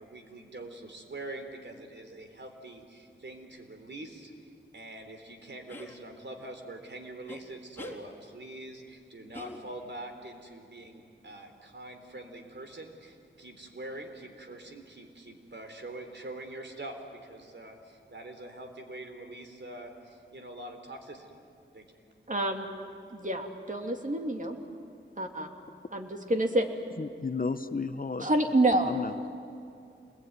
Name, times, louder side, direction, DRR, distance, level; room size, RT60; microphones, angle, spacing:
voice 1, 0.0-4.3 4.7-21.3 21.7-21.8, right 2 dB, 60° right, 5 dB, 3.7 m, -44 dB
sound 1, 5.7-5.9 7.3-7.4 7.8-8.0 9.3-10.0, left 1 dB, 10° left, 3.7 m, -43 dB
voice 2, 22.3-22.7 23.1-24.6 25.2-25.5 25.9-26.7 28.2-28.9, right 1 dB, 40° right, 4 dB, 2.9 m, -27 dB
voice 3, 27.0-28.3 28.9-29.3, left 4 dB, 45° left, 11 dB, 1.0 m, -33 dB
27.0 x 21.0 x 9.5 m, 2.6 s
cardioid pair, 50°, 21 cm